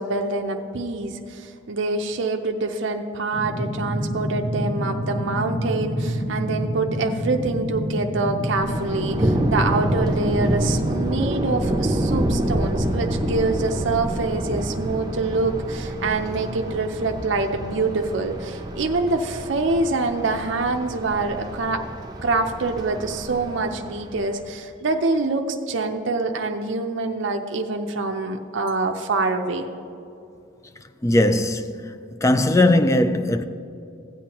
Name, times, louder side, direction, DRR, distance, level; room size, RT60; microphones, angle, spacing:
voice 1, 0.0-21.8 22.2-29.7, right 3 dB, 65° right, 0.5 m, -25 dB
sound 1, 3.3-10.8, equal, 70° left, 1.8 m, -27 dB
Thunder, 8.5-24.4, right 1 dB, 20° right, 0.7 m, -27 dB
voice 2, 31.0-31.9 32.2-33.4, left 1 dB, 15° left, 0.3 m, -19 dB
15.5 x 8.5 x 2.9 m
head